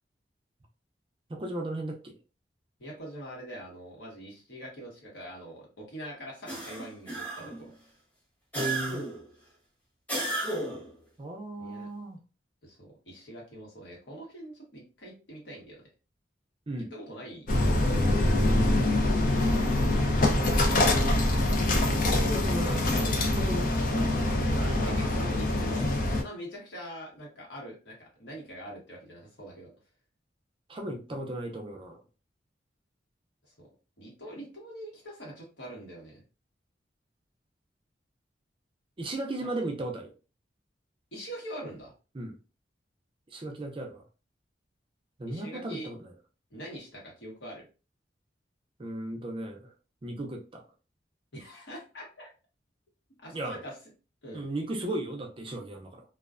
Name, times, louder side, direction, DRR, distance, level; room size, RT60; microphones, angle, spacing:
voice 1, 1.3-2.2 8.5-9.1 11.2-12.2 16.7-16.9 20.2-20.6 22.1-25.3 30.7-32.0 39.0-40.1 42.1-42.4 43.3-44.0 45.2-46.1 48.8-49.7 50.0-50.6 53.3-53.6 54.3-56.0, right 1 dB, 30° right, 2 dB, 0.4 m, -36 dB
voice 2, 2.8-7.7 11.6-11.9 12.6-15.8 16.8-18.0 22.5-23.0 24.4-29.7 34.0-36.2 39.4-39.5 41.1-41.9 45.2-45.9 46.5-47.6 51.3-52.3 53.2-53.7 54.2-54.5, right 1 dB, 80° left, -3 dB, 1.2 m, -44 dB
sound 1, 6.5-7.7 8.5-9.3 10.1-10.9, right 2 dB, 10° left, 0.7 m, -33 dB
sound 2, 17.5-26.2, left 1 dB, 50° left, 0.5 m, -24 dB
2.3 x 2.1 x 2.4 m, 0.33 s
head